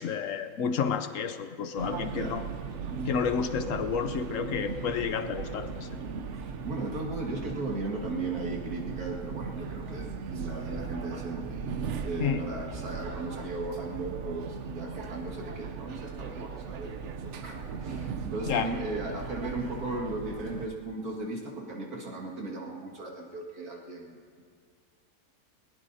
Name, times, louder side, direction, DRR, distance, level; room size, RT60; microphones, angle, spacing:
voice 1, 0.0-2.4 3.1-6.0 12.2-12.4 18.4-18.7, left 7 dB, 65° left, 9 dB, 1.0 m, -30 dB
sound 1, 1.8-20.7, right 5 dB, 60° right, 0.9 m, -38 dB
voice 2, 2.0-2.4 6.3-11.5 12.0-16.9 17.2-24.4, right 2 dB, 85° right, -2 dB, 2.6 m, -36 dB
20.0 x 19.5 x 2.8 m, 2.2 s
omnidirectional pair, 1.6 m